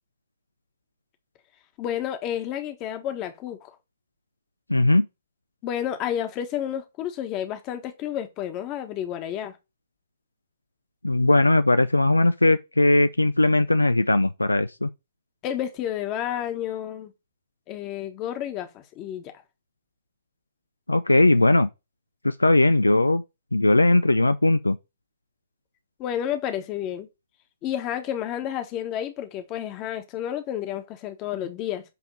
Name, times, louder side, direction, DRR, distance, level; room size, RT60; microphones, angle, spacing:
voice 1, 1.8-3.7 5.6-9.6 15.4-17.1 17.7-19.3 26.0-27.1 27.6-31.8, left 10 dB, 25° left, 1.3 m, -30 dB
voice 2, 4.7-5.1 11.0-14.9 20.9-21.7 22.2-23.2 23.5-24.8, left 2 dB, 80° left, 0.5 m, -19 dB
8.1 x 3.5 x 6.4 m
figure-of-eight pair, 120°, 0 cm